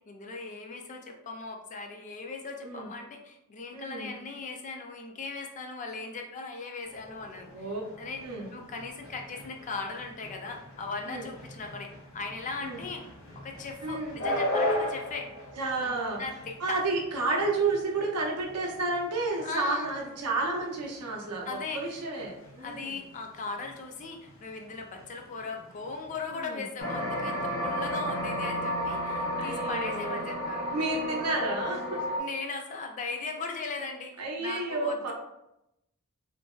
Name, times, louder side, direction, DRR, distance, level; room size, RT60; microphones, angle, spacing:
voice 1, 0.1-7.7 8.0-8.2 8.5-13.0 13.4-15.3 15.8-16.8 19.4-19.9 21.5-22.0 22.6-30.7 32.2-35.1, left 4 dB, 35° left, 3 dB, 0.4 m, -38 dB
voice 2, 3.7-4.1 7.5-7.8 8.2-8.5 11.1-11.2 12.6-12.8 13.8-14.2 15.6-16.2 16.6-21.5 21.7-22.9 26.3-26.6 29.4-30.2 30.7-32.0 34.2-35.1, right 3 dB, 85° right, 0 dB, 0.5 m, -31 dB
sound 1, 6.8-26.5, left 1 dB, 60° left, 0.9 m, -39 dB
sound 2, 26.8-32.2, equal, 85° left, 0.7 m, -32 dB
2.8 x 2.5 x 2.3 m, 0.86 s
head